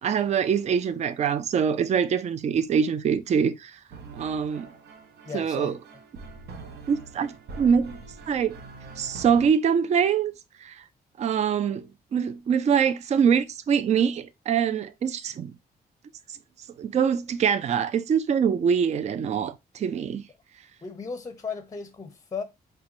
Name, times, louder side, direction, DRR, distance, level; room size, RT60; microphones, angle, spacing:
voice 1, 0.0-3.8 4.1-4.7 5.3-5.7 6.9-8.0 8.3-8.6 9.0-10.3 10.6-10.8 11.2-15.5 16.8-20.2, right 7 dB, 45° right, 0.4 m, -24 dB
sound 1, 3.9-9.5, right 4 dB, 80° right, 0.7 m, -43 dB
voice 2, 5.2-5.8 20.8-22.4, left 5 dB, 20° left, 0.6 m, -35 dB
4.8 x 2.2 x 2.9 m
cardioid pair, 100°, 17 cm